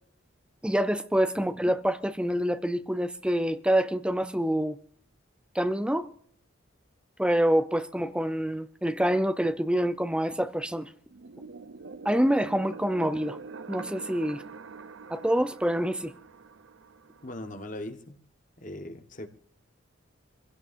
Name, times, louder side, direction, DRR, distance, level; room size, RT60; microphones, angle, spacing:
voice 1, 0.6-4.8 5.5-6.1 7.2-10.9 12.0-13.4 13.7-14.4 15.1-16.1, equal, 5° right, 0.6 m, -26 dB
sound 1, 11.1-17.6, right 4 dB, 70° right, 0.7 m, -45 dB
voice 2, 17.2-18.2 18.6-19.3, left 1 dB, 40° left, 1.4 m, -39 dB
25.5 x 16.5 x 2.6 m
head